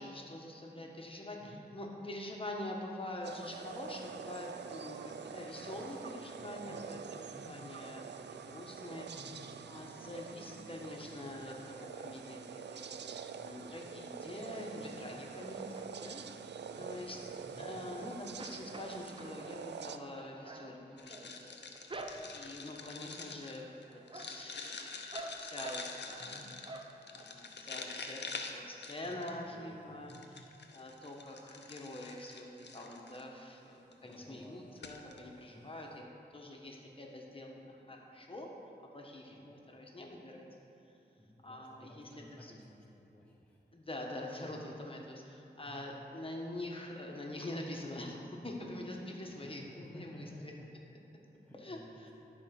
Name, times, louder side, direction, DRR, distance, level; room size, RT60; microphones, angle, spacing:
voice 1, 0.0-9.1 9.7-12.9 13.4-16.2 16.8-17.2 17.6-21.6 22.3-26.5 27.1-30.1 30.7-36.1 36.3-38.5 38.9-40.5 41.4-42.1 42.4-42.5 43.7-50.5 51.6-52.1, left 1 dB, 30° left, -1 dB, 1.3 m, -45 dB
sound 1, 3.2-20.0, right 6 dB, 80° right, 0.4 m, -46 dB
voice 2, 6.4-7.6 9.1-9.4 13.4-13.6 14.8-15.6 16.8-17.1 17.4-17.7 22.1-22.4 26.2-26.5 29.0-30.3 34.0-34.8 35.5-35.7 39.3-39.6 41.2-43.7 44.5-44.7 45.6-45.9 48.4-48.7 49.4-50.7 51.3-52.1, equal, 5° left, -3 dB, 0.8 m, -55 dB
sound 2, 15.4-16.2 16.6-17.9 18.2-22.6 23.1-23.5 23.8-26.3 26.6-27.3 27.7-27.8 28.1-28.2, right 2 dB, 30° right, 0.7 m, -49 dB
sound 3, 21.0-29.5 30.1-33.2 33.9-34.1 34.4-34.5 34.8-35.2, left 4 dB, 85° left, 0.7 m, -46 dB
11.5 x 4.4 x 5.9 m, 2.9 s
wide cardioid pair, 80°, 18 cm